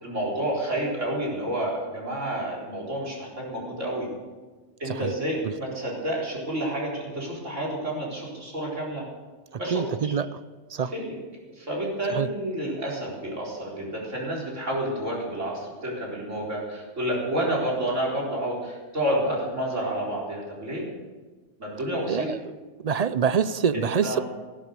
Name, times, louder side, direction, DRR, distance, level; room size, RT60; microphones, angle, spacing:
voice 1, 0.0-4.1 4.8-9.0 9.6-10.1 10.9-11.1 11.5-20.9 21.6-22.3 23.7-24.2, right 1 dB, 85° right, -4 dB, 4.6 m, -29 dB
voice 2, 9.7-10.4 10.7-10.9 12.1-12.3 22.1-22.5 22.8-24.2, right 7 dB, 55° right, 14 dB, 0.4 m, -26 dB
16.5 x 11.0 x 6.7 m, 1.3 s
omnidirectional pair, 1.2 m